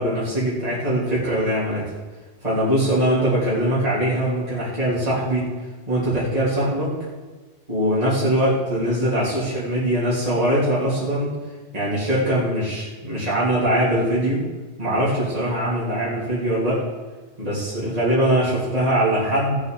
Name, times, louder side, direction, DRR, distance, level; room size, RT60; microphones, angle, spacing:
voice 1, 0.0-1.9 2.4-5.4 5.9-6.9 7.7-11.4 11.7-14.4 14.8-16.8 17.4-19.6, right 1 dB, 35° right, -10 dB, 3.4 m, -22 dB
18.5 x 8.2 x 4.0 m, 1.4 s
omnidirectional pair, 1.2 m